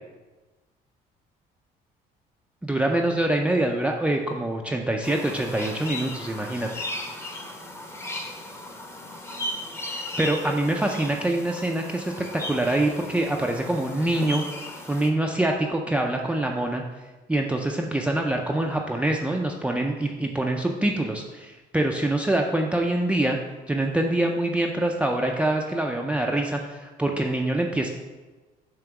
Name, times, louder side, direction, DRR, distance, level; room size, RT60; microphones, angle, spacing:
voice 1, 2.6-6.8 10.2-14.4 14.9-16.8 17.3-23.4 23.7-27.9, right 1 dB, 5° right, 1 dB, 0.4 m, -25 dB
sound 1, 5.0-15.1, left 1 dB, 15° left, 0.8 m, -36 dB
7.2 x 3.0 x 5.8 m, 1.2 s
cardioid pair, 110°, 17 cm